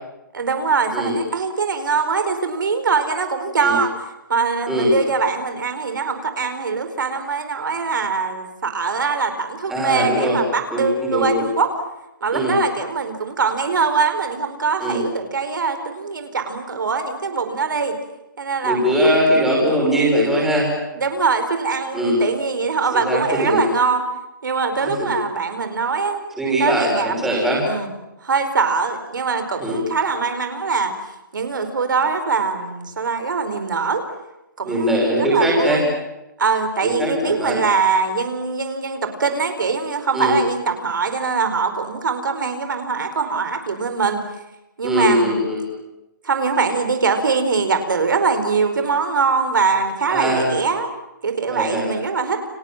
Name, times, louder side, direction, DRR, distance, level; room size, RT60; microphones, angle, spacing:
voice 1, 0.3-3.9 4.3-11.7 12.2-18.0 18.4-19.2 21.0-24.0 24.4-26.3 26.6-27.2 27.6-27.9 28.2-30.9 31.3-34.0 34.6-35.8 36.4-44.2 44.8-45.3 46.2-50.9 51.2-52.4, right 5 dB, 75° right, 7 dB, 4.8 m, -22 dB
voice 2, 9.7-10.4 10.7-11.4 12.3-12.6 14.8-15.0 18.6-20.7 21.9-22.2 22.9-23.6 24.8-25.1 26.4-27.7 29.6-29.8 34.7-35.8 36.8-37.6 40.1-40.4 44.8-45.7 50.1-50.5 51.5-52.0, equal, 5° right, -4 dB, 5.9 m, -20 dB
30.0 x 26.5 x 7.6 m, 0.97 s
hypercardioid pair, 175°, 11 cm